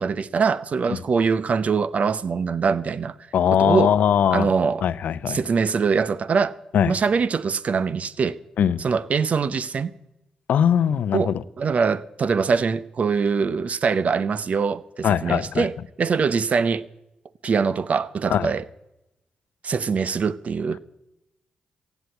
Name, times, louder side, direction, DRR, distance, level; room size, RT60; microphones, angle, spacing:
voice 1, 0.0-3.1 3.5-3.9 4.3-4.9 5.3-6.6 6.9-8.4 8.8-9.9 11.1-16.8 17.4-18.6 19.6-20.8, right 5 dB, 55° right, 0.7 m, -23 dB
voice 2, 3.3-4.5 4.8-5.4 6.7-6.9 8.6-8.8 10.5-11.4 15.0-15.7 18.3-18.5, left 9 dB, 75° left, 0.6 m, -20 dB
15.5 x 8.1 x 8.3 m
supercardioid pair, 50°, 3 cm